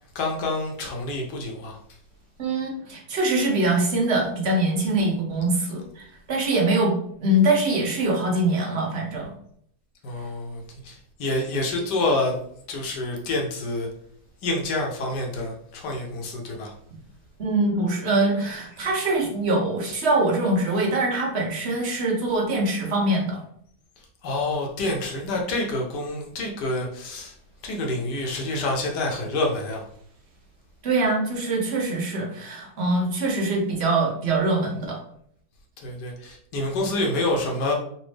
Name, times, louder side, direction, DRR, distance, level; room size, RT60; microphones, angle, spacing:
voice 1, 0.1-1.8 10.0-12.4 12.7-13.9 14.4-16.7 18.8-18.9 24.2-27.3 27.6-29.9 35.8-37.7, left 2 dB, 65° left, 0 dB, 1.3 m, -27 dB
voice 2, 2.4-9.3 17.4-23.4 30.8-35.0, right 2 dB, 45° right, -1 dB, 0.9 m, -23 dB
4.1 x 2.6 x 3.2 m, 0.66 s
omnidirectional pair, 2.0 m